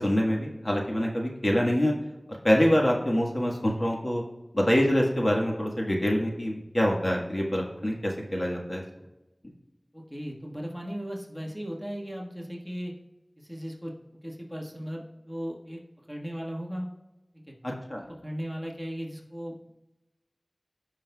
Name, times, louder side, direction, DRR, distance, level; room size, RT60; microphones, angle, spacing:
voice 1, 0.0-1.9 2.4-4.2 4.5-8.8 17.6-18.1, equal, 40° left, -1 dB, 1.5 m, -25 dB
voice 2, 9.9-12.9 13.4-13.9 14.2-15.8 16.1-16.9 17.3-17.5 18.2-19.7, equal, ahead, -2 dB, 1.5 m, -37 dB
16.5 x 5.7 x 2.3 m, 1.0 s
wide cardioid pair, 45°, 0 cm